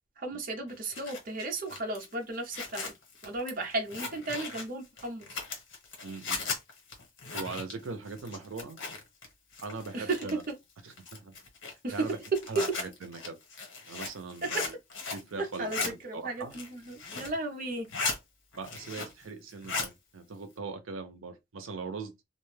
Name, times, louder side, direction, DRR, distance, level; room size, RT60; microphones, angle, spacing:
voice 1, 0.2-2.9 3.2-5.3 9.9-10.3 11.8-11.9 15.4-17.9, right 2 dB, 45° right, 0.7 m, -35 dB
Zipper (clothing), 0.7-9.3 9.5-10.5 11.0-15.3 15.5-15.9 16.4-17.4 17.7-18.2 18.5-19.3 19.5-19.9, left 4 dB, 80° left, 1.3 m, -37 dB
voice 2, 6.0-6.5 7.3-8.8 9.6-10.4 10.8-11.3 11.9-12.2 12.5-13.4 13.8-14.8 15.1-16.5 18.5-22.1, right 4 dB, 90° right, 0.6 m, -40 dB
2.5 x 2.2 x 3.2 m
head